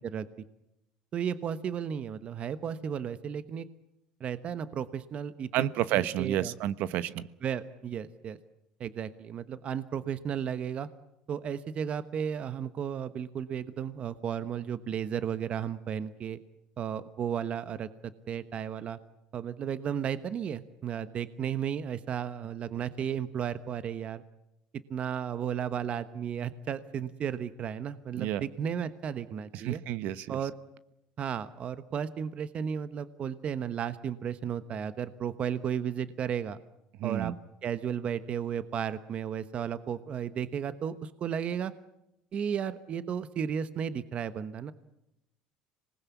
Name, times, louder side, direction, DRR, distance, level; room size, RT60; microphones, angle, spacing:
voice 1, 1.1-3.6 4.2-5.5 5.9-6.5 7.4-8.4 8.8-10.9 11.3-16.4 16.8-17.9 18.3-19.0 19.3-24.2 24.9-29.8 30.3-30.5 31.2-36.6 37.0-37.3 37.6-41.7 42.3-44.7, right 8 dB, 45° right, 13 dB, 1.1 m, -34 dB
voice 2, 5.5-7.3 28.2-28.4 29.5-30.4 37.0-37.3, right 13 dB, 65° right, 16 dB, 1.1 m, -30 dB
26.0 x 20.0 x 8.4 m, 0.87 s
supercardioid pair, 105°, 3 cm